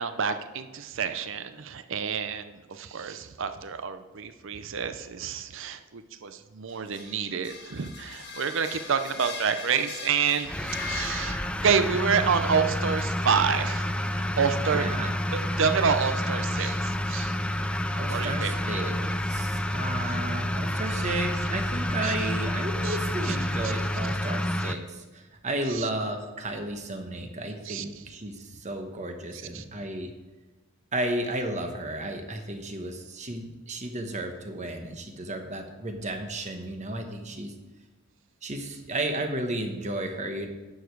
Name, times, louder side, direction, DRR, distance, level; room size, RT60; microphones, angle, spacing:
voice 1, 0.0-14.9 15.6-17.4 18.1-18.5 22.0-22.1 22.8-23.0 23.2-23.4 23.6-23.7 25.7-25.9 27.7-27.8 29.3-29.6, right 6 dB, 60° right, 10 dB, 0.6 m, -28 dB
sound 1, 6.7-11.9, left 5 dB, 55° left, 1.6 m, -40 dB
sound 2, 10.4-24.7, left 1 dB, 5° left, 0.4 m, -29 dB
voice 2, 14.7-15.1 18.0-30.1 30.9-37.5 38.4-40.5, right 1 dB, 35° right, 5 dB, 1.1 m, -33 dB
11.0 x 7.1 x 4.7 m, 1.2 s
head